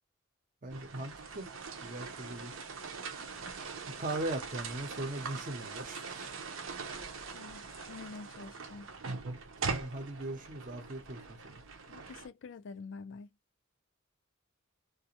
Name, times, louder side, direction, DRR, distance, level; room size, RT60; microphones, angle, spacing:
voice 1, 0.6-1.5 1.8-2.5 3.1-3.4 3.8-6.4 9.6-11.6, right 2 dB, 40° right, 0.7 m, -40 dB
sound 1, 0.7-12.3, right 4 dB, 75° right, 0.6 m, -42 dB
voice 2, 7.3-8.9 11.9-13.3, left 4 dB, 60° left, 0.3 m, -47 dB
2.4 x 2.2 x 2.8 m
head